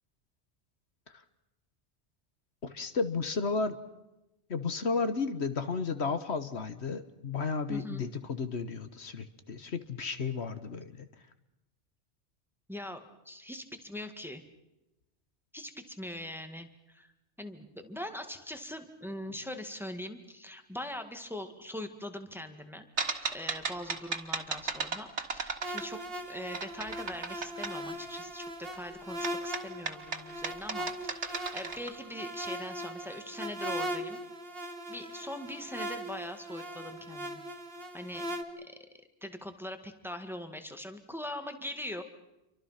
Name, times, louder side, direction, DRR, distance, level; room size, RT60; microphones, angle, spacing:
voice 1, 2.6-3.8 4.5-11.1, left 4 dB, 70° left, 10 dB, 1.5 m, -33 dB
voice 2, 7.7-8.0 12.7-14.4 15.5-17.1 17.4-22.9 23.3-26.0 26.3-34.2 34.9-37.4 37.9-38.2 38.6-38.8 39.2-42.0, left 1 dB, ahead, 7 dB, 1.9 m, -42 dB
sound 1, 23.0-26.2 26.5-27.7 29.2-31.9, right 4 dB, 75° right, 2.1 m, -35 dB
sound 2, 25.6-38.4, right 1 dB, 55° right, 2.2 m, -39 dB
29.0 x 24.5 x 5.8 m, 0.95 s
omnidirectional pair, 1.2 m